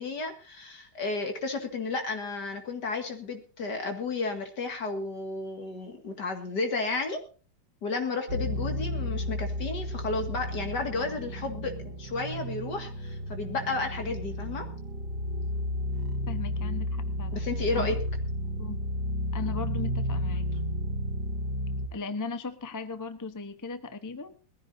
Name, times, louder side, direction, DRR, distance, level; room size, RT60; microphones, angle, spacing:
voice 1, 0.0-7.2 7.8-14.7 17.3-18.0, left 3 dB, 60° left, 4 dB, 2.6 m, -32 dB
sound 1, 8.3-21.9, left 1 dB, 60° right, 2.4 m, -32 dB
voice 2, 16.3-17.4 17.7-17.9 18.6-18.8 19.3-20.6 21.9-24.3, left 3 dB, 15° left, 10 dB, 0.6 m, -37 dB
21.5 x 15.0 x 2.7 m, 0.38 s
omnidirectional pair, 2.1 m